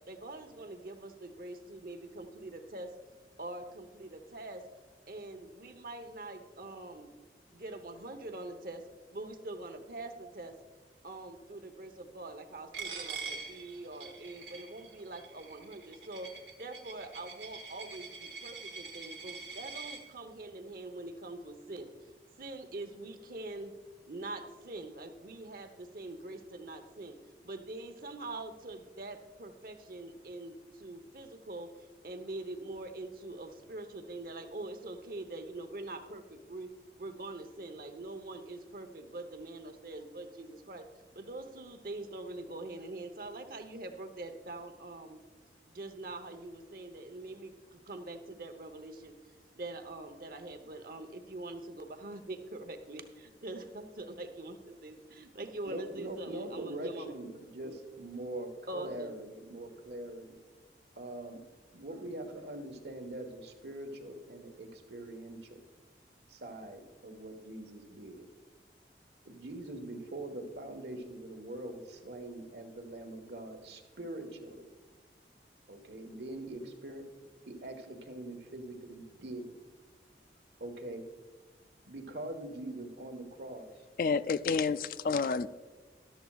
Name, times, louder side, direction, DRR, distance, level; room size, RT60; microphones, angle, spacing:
voice 1, 0.1-2.9 3.4-4.6 5.1-7.1 7.5-8.8 9.1-10.6 11.0-16.3 16.6-21.9 22.4-23.7 24.1-27.2 27.4-31.7 32.0-36.7 37.0-40.9 41.1-45.2 45.7-49.1 49.5-57.1 57.6-57.7 58.7-59.1, right 2 dB, 55° right, 7 dB, 0.9 m, -44 dB
Coin (dropping), 12.7-20.0, right 5 dB, 90° right, 1.4 m, -44 dB
voice 2, 55.6-60.4 61.0-61.4 61.7-65.6 66.3-68.3 69.2-74.7 75.7-77.1 77.5-79.6 80.6-81.0 81.8-83.8, right 1 dB, 70° right, 5 dB, 1.4 m, -43 dB
voice 3, 84.0-85.5, left 5 dB, 50° left, 14 dB, 0.3 m, -29 dB
13.5 x 12.0 x 2.4 m, 1.3 s
head